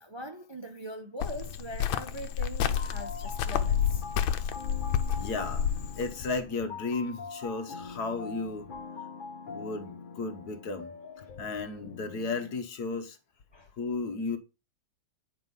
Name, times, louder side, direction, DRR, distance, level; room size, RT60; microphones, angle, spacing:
voice 1, 0.0-4.2 13.5-13.7, equal, 40° right, 0.4 m, -42 dB
Cricket, 1.2-6.4, left 8 dB, 85° left, 1.5 m, -30 dB
sound 1, 2.7-12.6, left 4 dB, 35° left, 0.9 m, -44 dB
voice 2, 5.2-5.7 6.0-8.7 9.5-10.9 11.3-13.2 13.8-14.4, left 3 dB, 55° left, 1.4 m, -34 dB
9.1 x 4.7 x 5.4 m
omnidirectional pair, 2.1 m